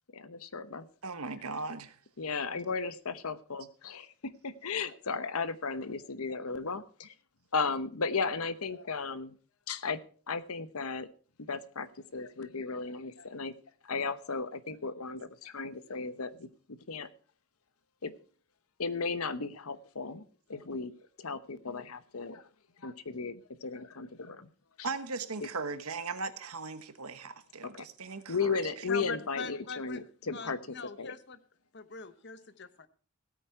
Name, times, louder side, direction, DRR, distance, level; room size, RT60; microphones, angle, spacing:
voice 1, 0.3-0.9 2.2-7.1 7.5-9.3 9.7-10.0 10.3-11.1 11.4-11.9 12.1-13.5 13.9-17.1 18.0-18.1 18.8-20.2 20.5-20.9 21.2-22.4 22.8-24.5 24.8-24.9 27.6-27.9 28.3-30.6 31.0-31.1, left 4 dB, 75° left, 13 dB, 0.9 m, -35 dB
voice 2, 1.0-1.9 24.8-28.9, right 4 dB, 80° right, 10 dB, 1.3 m, -38 dB
voice 3, 28.9-30.0 30.3-31.4 31.7-32.9, left 4 dB, 50° left, 12 dB, 1.0 m, -41 dB
16.5 x 8.9 x 4.6 m, 0.42 s
head